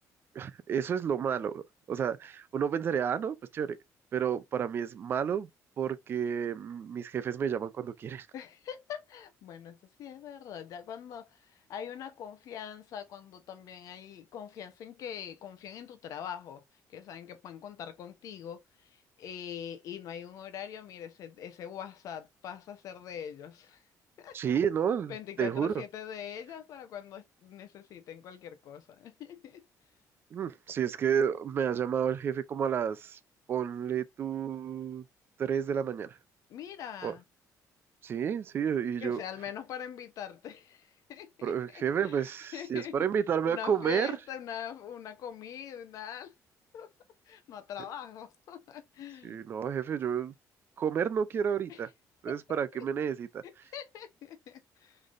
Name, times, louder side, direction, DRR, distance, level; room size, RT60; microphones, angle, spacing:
voice 1, 0.3-3.8 4.1-5.5 5.8-8.3 24.3-25.7 30.3-33.2 33.5-35.0 35.4-36.2 37.0-37.1 38.0-39.2 41.4-44.1 49.2-50.3 50.8-51.9 52.2-53.4, right 8 dB, 35° right, 0.4 m, -31 dB
voice 2, 8.3-16.6 16.9-23.8 24.2-24.6 25.1-29.6 36.5-37.2 39.0-42.2 42.5-43.1 43.4-46.3 46.7-46.9 47.3-49.4 51.7-51.8 52.5-52.9 53.4-55.0, left 9 dB, 60° left, 0.8 m, -43 dB
3.8 x 3.3 x 2.5 m
cardioid pair, 160°, 6 cm